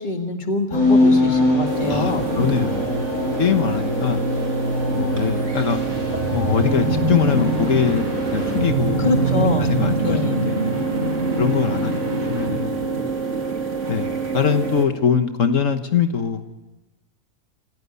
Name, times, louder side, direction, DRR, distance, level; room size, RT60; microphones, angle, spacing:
voice 1, 0.0-2.5 9.0-9.7 10.0-10.4, left 3 dB, 35° left, 5 dB, 2.0 m, -25 dB
sound 1, 0.7-9.8, left 1 dB, 90° left, 8.6 m, -24 dB
sound 2, 1.7-14.8, right 5 dB, 60° right, 2.8 m, -27 dB
voice 2, 1.9-2.9 3.4-4.2 4.9-5.8 6.3-8.0 8.3-9.2 9.6-10.6 11.4-12.8 13.9-16.6, left 7 dB, 65° left, 8 dB, 1.5 m, -22 dB
sound 3, 5.4-13.5, right 1 dB, 75° right, 5.1 m, -25 dB
28.0 x 15.0 x 8.3 m, 1.1 s
omnidirectional pair, 1.4 m